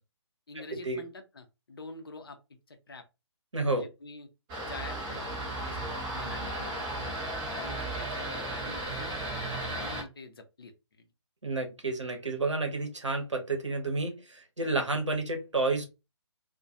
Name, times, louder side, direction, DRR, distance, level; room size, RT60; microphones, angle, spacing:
voice 1, 0.5-3.0 3.7-4.3 4.6-7.2 7.6-10.7 11.0-11.1, left 3 dB, 50° left, 0.5 m, -46 dB
voice 2, 3.5-3.8 11.4-15.9, right 3 dB, 75° right, 0.8 m, -30 dB
sound 1, 4.5-10.0, right 1 dB, 10° right, 0.5 m, -35 dB
2.3 x 2.1 x 2.7 m
figure-of-eight pair, 140°, 15 cm